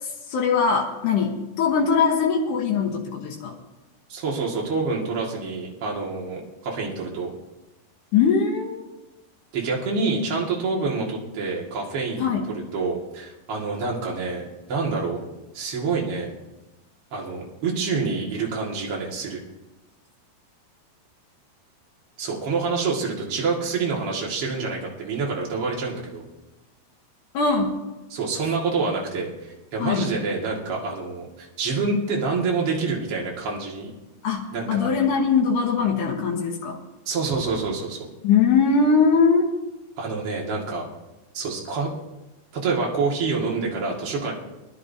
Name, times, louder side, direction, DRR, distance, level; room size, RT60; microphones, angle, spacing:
voice 1, 0.3-3.6 8.1-8.8 12.2-12.4 27.3-27.7 29.8-30.1 34.2-36.8 38.2-39.5, left 5 dB, 85° left, 0 dB, 1.8 m, -21 dB
voice 2, 4.1-7.3 9.5-15.2 15.5-16.3 17.1-19.4 22.2-26.3 28.1-33.9 34.5-34.9 37.1-38.0 40.0-40.8 41.3-41.9 42.5-44.3, right 4 dB, 45° right, -2 dB, 1.9 m, -27 dB
22.0 x 11.0 x 2.7 m, 1.0 s
omnidirectional pair, 5.2 m